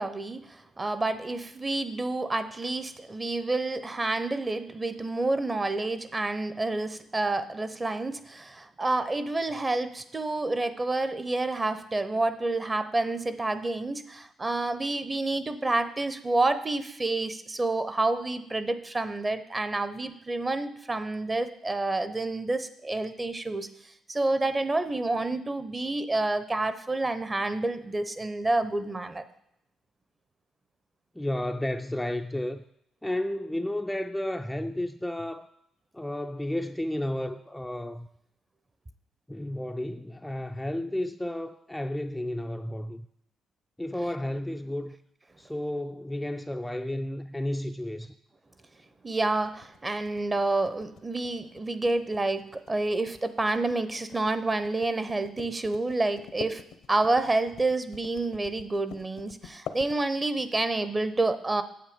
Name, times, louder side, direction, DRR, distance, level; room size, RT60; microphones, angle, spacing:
voice 1, 0.0-29.2 49.0-56.6 56.9-61.6, right 2 dB, 20° right, 0.7 m, -29 dB
voice 2, 31.2-32.6 33.0-35.5 35.9-38.1 39.3-43.1 43.8-45.0 45.4-48.2, left 1 dB, 5° left, 0.4 m, -32 dB
sound 1, 49.4-60.5, left 8 dB, 80° left, 0.8 m, -45 dB
8.8 x 7.7 x 5.1 m
cardioid pair, 90°, 0 cm